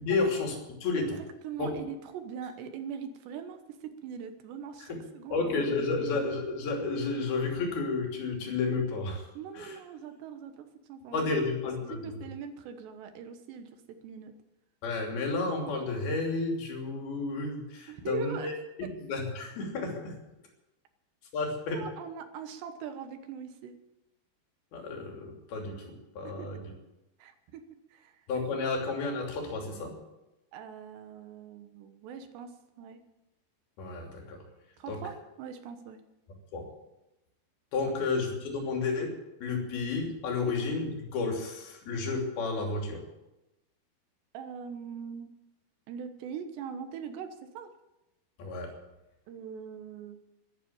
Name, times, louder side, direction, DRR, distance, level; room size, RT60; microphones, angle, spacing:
voice 1, 0.0-0.6 0.8-1.1 1.6-1.7 4.8-5.0 5.3-9.3 9.5-9.8 11.1-12.1 14.8-18.5 18.8-20.2 21.3-21.8 24.7-26.7 28.3-29.9 33.8-34.4 34.9-35.0 36.5-36.7 37.7-39.1 39.4-43.0 48.4-48.7, left 3 dB, 65° left, 1 dB, 4.8 m, -31 dB
voice 2, 1.4-6.1 9.3-11.4 11.8-14.3 17.9-18.5 21.7-23.7 26.2-26.5 27.2-28.2 30.5-33.0 34.8-36.0 38.1-38.2 40.5-40.6 44.3-45.3 45.9-47.7 49.3-50.2, right 7 dB, 80° right, 8 dB, 3.4 m, -42 dB
12.5 x 12.0 x 8.8 m, 0.96 s
omnidirectional pair, 4.9 m